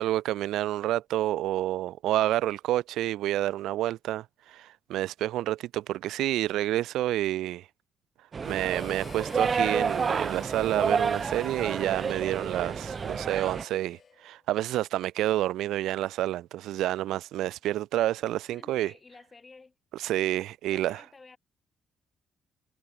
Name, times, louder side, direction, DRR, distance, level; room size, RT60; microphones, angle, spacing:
voice 1, 0.0-7.7 8.4-18.9 20.0-21.0, right 14 dB, 85° right, 0.8 m, -29 dB
sound 1, 8.3-13.6, right 5 dB, 35° right, 0.5 m, -30 dB
Harmonica, 8.4-14.4, left 6 dB, 40° left, 2.2 m, -50 dB
voice 2, 18.5-19.8 20.6-21.4, left 4 dB, 25° left, 6.6 m, -52 dB
cardioid pair, 130°, 0 cm